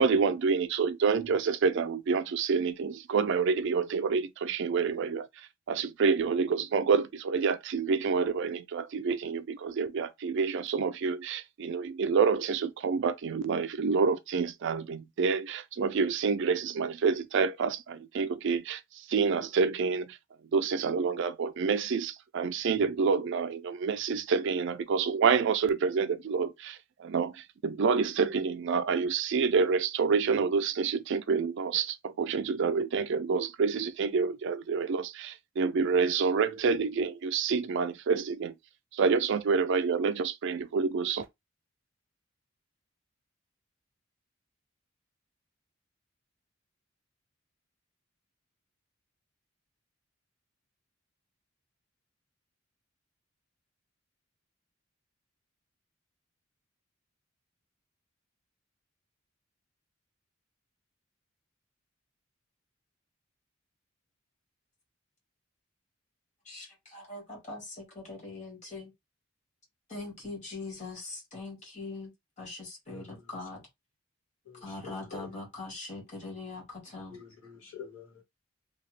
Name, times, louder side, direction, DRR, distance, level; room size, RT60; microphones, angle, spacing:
voice 1, 0.0-20.2 20.5-38.5 38.9-41.2, right 5 dB, 60° right, 0.4 m, -28 dB
voice 2, 66.5-68.9 69.9-72.1 72.4-73.7 74.6-77.2, left 3 dB, 35° left, 1.6 m, -42 dB
voice 3, 74.5-75.3 77.1-78.2, left 6 dB, 85° left, 1.7 m, -46 dB
2.8 x 2.3 x 3.2 m
head